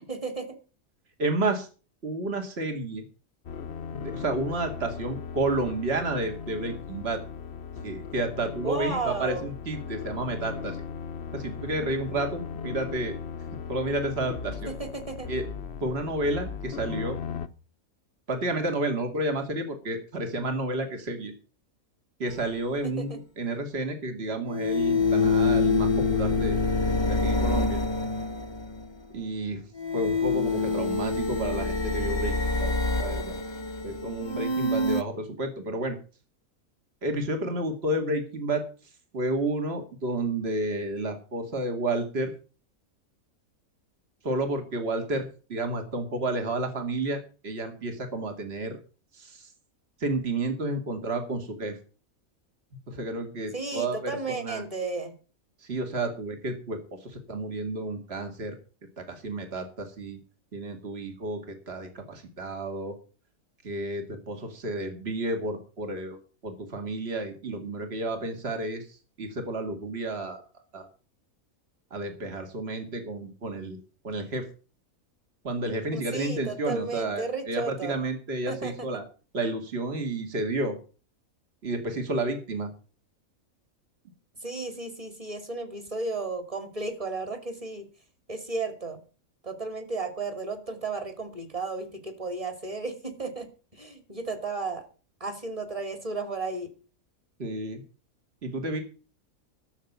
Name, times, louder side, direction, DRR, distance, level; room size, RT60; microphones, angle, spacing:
voice 1, 0.1-0.6 8.6-9.4 14.7-15.3 22.8-23.2 53.5-55.1 75.9-78.0 78.5-78.9 84.4-87.9 88.3-89.0 89.4-94.9 95.2-96.7, right 3 dB, 25° right, 7 dB, 2.4 m, -34 dB
voice 2, 1.2-1.7 2.0-3.0 3.9-7.2 7.8-10.8 11.3-13.2 13.7-14.7 15.3-15.4 15.8-17.2 18.3-21.3 22.2-26.6 27.1-27.8 29.1-29.6 29.9-32.7 33.0-33.4 33.8-36.0 37.0-38.6 39.1-42.3 44.2-48.8 49.1-49.5 50.0-51.8 52.9-54.6 55.6-58.6 59.0-60.2 60.5-63.0 63.6-66.2 66.4-70.4 70.7-70.9 71.9-73.8 74.0-74.5 75.4-79.0 79.3-80.8 81.6-82.7 97.4-97.8 98.4-98.8, right 2 dB, 45° right, 5 dB, 2.5 m, -31 dB
sound 1, 3.5-17.5, left 6 dB, 55° left, 1.0 m, -38 dB
sound 2, 22.3-22.4 24.5-28.9 29.8-35.0, left 3 dB, 25° left, 0.8 m, -26 dB
13.0 x 7.1 x 8.1 m, 0.37 s
omnidirectional pair, 1.5 m